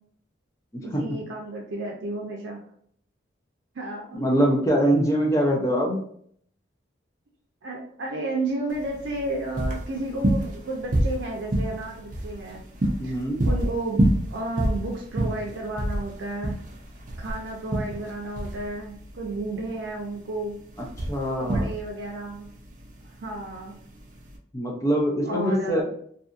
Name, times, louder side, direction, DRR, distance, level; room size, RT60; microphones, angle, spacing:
voice 1, 0.8-2.6 3.7-4.2 7.6-12.6 13.0-13.2 13.4-16.6 17.2-20.6 21.4-22.5 23.2-23.8 25.2-25.8, right 2 dB, 90° right, -1 dB, 0.5 m, -32 dB
voice 2, 4.1-6.0 13.0-13.4 21.1-21.6 24.5-25.8, equal, 15° left, -1 dB, 0.5 m, -23 dB
sound 1, 8.7-24.4, right 1 dB, 45° right, 0.5 m, -28 dB
2.7 x 2.6 x 2.4 m, 0.63 s
head